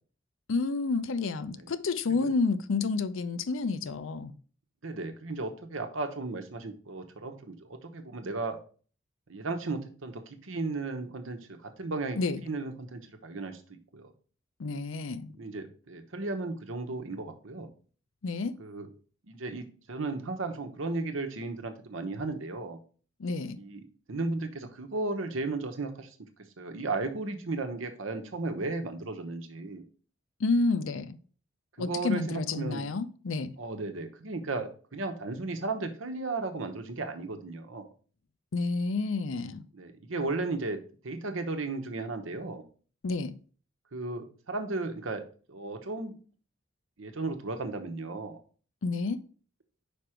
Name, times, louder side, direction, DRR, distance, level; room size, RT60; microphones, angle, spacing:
voice 1, 0.5-4.3 12.2-12.4 14.6-15.3 18.2-18.6 23.2-23.6 30.4-31.2 31.8-33.5 38.5-39.6 43.0-43.4 48.8-49.2, left 3 dB, 80° left, 0.5 m, -30 dB
voice 2, 4.8-8.6 9.3-13.6 13.9-14.1 15.3-17.7 18.6-18.9 19.3-22.8 23.6-23.8 24.1-26.2 26.6-29.8 31.8-32.9 33.6-37.9 39.7-40.8 41.0-42.7 43.9-46.2 47.0-48.4, right 3 dB, 80° right, 1.0 m, -35 dB
5.2 x 5.0 x 4.4 m
head